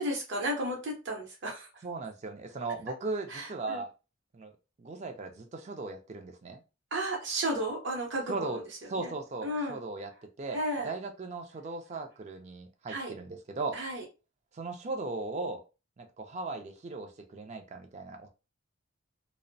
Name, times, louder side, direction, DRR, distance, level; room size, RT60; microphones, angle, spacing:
voice 1, 0.0-1.7 3.3-3.8 6.9-8.6 9.0-9.1 9.4-9.8 10.5-10.9 12.9-13.1 13.7-14.0, right 1 dB, 55° right, -2 dB, 0.7 m, -33 dB
voice 2, 1.8-3.9 4.3-4.5 4.8-6.6 8.3-8.6 8.9-10.1 10.4-10.6 10.8-13.8 14.5-15.6 16.0-18.3, right 3 dB, 35° right, 5 dB, 0.4 m, -37 dB
2.5 x 2.0 x 2.5 m, 0.30 s
head